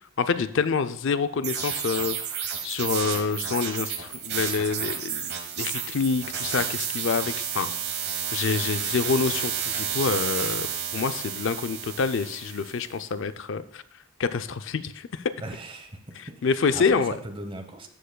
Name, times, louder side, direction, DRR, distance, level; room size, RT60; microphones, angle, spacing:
voice 1, 0.2-7.7 8.3-10.7 10.9-13.8 14.2-15.2 16.4-17.1, left 5 dB, 60° left, 11 dB, 0.4 m, -27 dB
sound 1, 1.4-12.8, right 8 dB, 50° right, 1.1 m, -31 dB
voice 2, 15.4-17.9, right 1 dB, 25° right, 6 dB, 0.9 m, -39 dB
13.0 x 7.7 x 2.2 m, 0.63 s
head